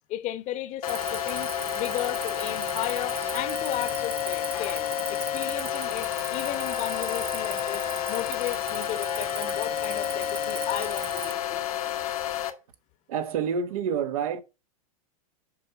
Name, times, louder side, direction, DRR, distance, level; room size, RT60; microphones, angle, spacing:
voice 1, 0.1-11.8, left 13 dB, 40° left, 1.0 m, -35 dB
sound 1, 0.8-12.5, left 10 dB, 75° left, 1.3 m, -30 dB
Cricket, 0.9-11.3, right 4 dB, 10° right, 0.5 m, -40 dB
voice 2, 13.1-14.4, right 7 dB, 70° right, 1.0 m, -28 dB
7.3 x 4.5 x 5.8 m
hypercardioid pair, 110°, 19 cm